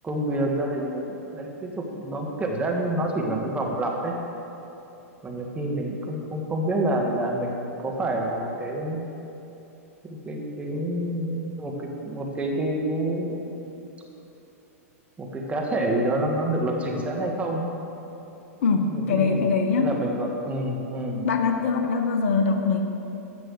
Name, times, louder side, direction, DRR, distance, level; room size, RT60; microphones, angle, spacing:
voice 1, 0.0-4.1 5.2-9.1 10.0-13.6 15.2-17.7 18.8-21.3, right 1 dB, 15° right, -1 dB, 1.9 m, -28 dB
voice 2, 18.6-20.0 21.2-22.8, left 5 dB, 60° left, 5 dB, 1.2 m, -23 dB
14.5 x 6.2 x 6.7 m, 3.0 s
hypercardioid pair, 105°, 8 cm